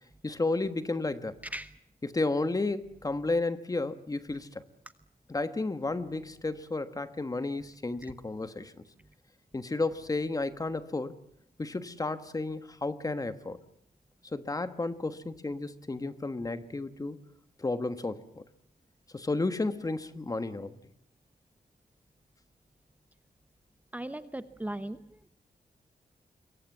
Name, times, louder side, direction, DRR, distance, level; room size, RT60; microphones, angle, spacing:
voice 1, 0.2-1.4 2.0-4.6 5.3-8.7 9.5-11.2 11.6-13.6 14.2-17.2 17.6-18.4 19.1-20.8, left 2 dB, 25° left, 11 dB, 1.4 m, -32 dB
voice 2, 1.4-1.7 23.9-25.0, right 1 dB, 10° right, 11 dB, 0.9 m, -37 dB
26.5 x 23.0 x 7.3 m, 0.69 s
wide cardioid pair, 130°, 15 cm